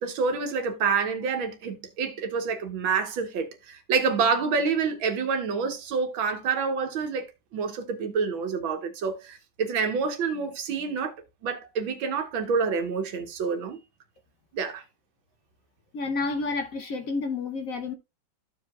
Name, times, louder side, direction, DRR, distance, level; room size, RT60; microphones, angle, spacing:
voice 1, 0.0-7.3 7.5-11.1 11.4-13.8 14.5-14.8, right 5 dB, 85° right, 1.9 m, -27 dB
voice 2, 15.9-17.9, left 3 dB, 60° left, 0.9 m, -30 dB
14.0 x 4.8 x 2.3 m
omnidirectional pair, 2.1 m